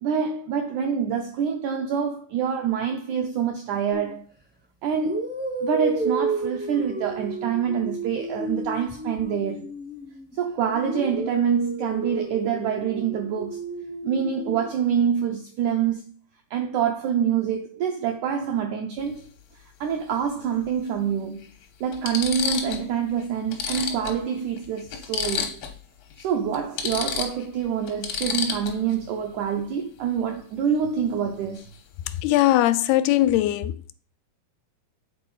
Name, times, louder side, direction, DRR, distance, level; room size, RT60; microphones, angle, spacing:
voice 1, 0.0-4.2 4.8-5.2 5.6-9.7 10.3-13.6 14.0-16.0 16.5-19.2 19.8-21.5 21.8-25.6 26.2-31.6, right 7 dB, 80° right, 1.7 m, -26 dB
sound 1, 3.9-4.2 5.0-10.3 10.7-14.7, right 3 dB, 10° right, 0.5 m, -31 dB
sound 2, 19.0-19.2 20.7-20.8 21.4-21.5 21.9-22.9 23.2-23.3 23.5-25.8 26.1-26.2 26.5-28.9 31.5-31.8 32.0-32.5, left 7 dB, 70° left, 1.6 m, -30 dB
voice 2, 32.2-33.8, left 14 dB, 85° left, 2.4 m, -20 dB
7.9 x 4.0 x 5.4 m
omnidirectional pair, 4.4 m